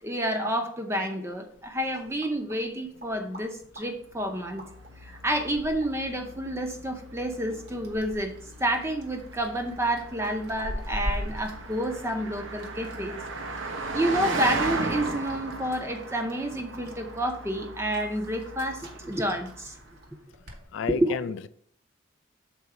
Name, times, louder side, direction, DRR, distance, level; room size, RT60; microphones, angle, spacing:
voice 1, 0.0-4.7 5.0-13.2 13.6-19.8 20.9-21.2, right 1 dB, 15° right, 0.6 m, -29 dB
sound 1, 1.5-20.6, equal, 55° right, 1.2 m, -43 dB
Car passing by, 4.2-19.9, right 3 dB, 75° right, 0.8 m, -37 dB
voice 2, 20.7-21.5, left 6 dB, 70° left, 0.3 m, -31 dB
6.8 x 4.0 x 4.7 m
head